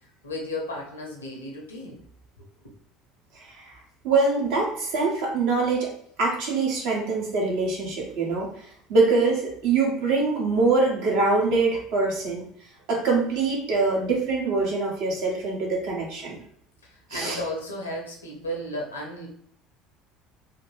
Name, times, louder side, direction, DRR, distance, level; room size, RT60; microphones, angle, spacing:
voice 1, 0.2-2.0 2.4-2.5 16.8-19.3, left 1 dB, 80° left, 0 dB, 0.7 m, -34 dB
voice 2, 4.0-5.9 6.2-8.5 8.9-12.5 12.9-16.4 17.1-17.4, right 3 dB, 60° right, -2 dB, 1.0 m, -24 dB
2.8 x 2.5 x 3.0 m, 0.63 s
figure-of-eight pair, 65°, 0 cm